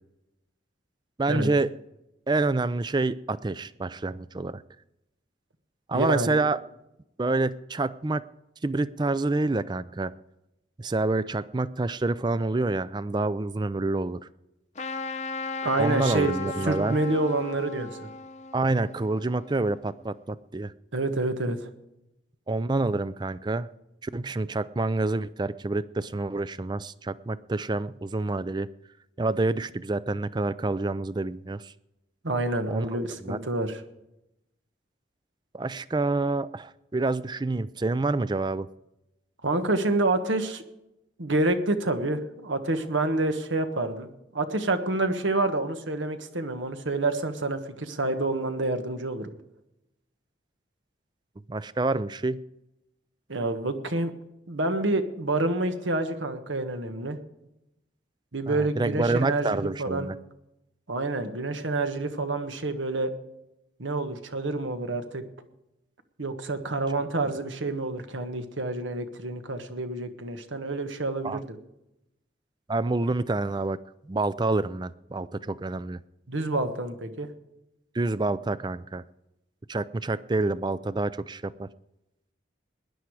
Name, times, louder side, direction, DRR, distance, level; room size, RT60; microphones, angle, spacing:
voice 1, 1.2-1.7 2.3-4.6 5.9-6.6 7.2-8.2 8.6-10.1 10.8-14.3 15.8-17.0 18.5-20.7 22.5-23.7 24.0-28.7 29.2-31.7 32.7-33.4 35.5-38.7 51.5-52.4 58.5-60.1 71.2-71.4 72.7-73.8 74.0-76.0 77.9-79.0 79.7-81.7, right 2 dB, 25° right, 17 dB, 0.4 m, -27 dB
voice 2, 5.9-6.4 15.6-18.1 20.9-21.7 32.2-33.8 39.4-40.6 41.2-49.3 53.3-54.1 54.5-57.2 58.3-60.1 60.9-63.1 63.8-65.2 66.2-71.4 76.3-77.3, right 2 dB, 80° right, 8 dB, 1.5 m, -28 dB
Trumpet, 14.7-19.8, left 3 dB, 35° left, 0.8 m, -36 dB
19.5 x 10.5 x 4.8 m, 0.88 s
head